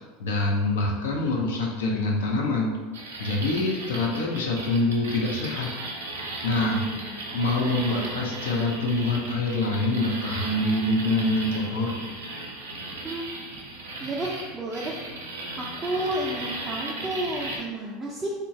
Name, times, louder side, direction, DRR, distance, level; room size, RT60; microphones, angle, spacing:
voice 1, 0.2-2.7 3.2-5.7 6.4-6.8 7.3-11.9, left 2 dB, 70° left, -1 dB, 0.5 m, -25 dB
sound 1, 2.9-17.6, right 2 dB, 75° right, 0.5 m, -36 dB
voice 2, 6.7-7.2 7.6-8.2 13.0-13.3 14.0-15.0 15.6-18.3, right 1 dB, 20° right, -4 dB, 0.4 m, -32 dB
2.9 x 2.2 x 2.6 m, 1.3 s
figure-of-eight pair, 80°, 0 cm